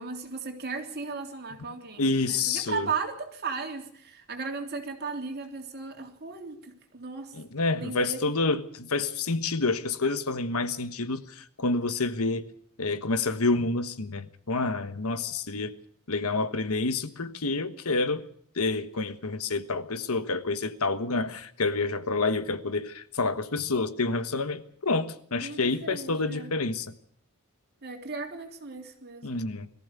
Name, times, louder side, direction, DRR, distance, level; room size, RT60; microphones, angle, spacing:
voice 1, 0.0-7.4 7.7-8.2 25.4-26.5 27.8-29.4, right 4 dB, 45° right, 3.5 m, -36 dB
voice 2, 2.0-2.9 7.3-12.4 12.8-15.7 16.1-18.2 18.5-26.9 29.2-29.7, left 3 dB, 75° left, 1.4 m, -28 dB
22.0 x 15.0 x 8.4 m
head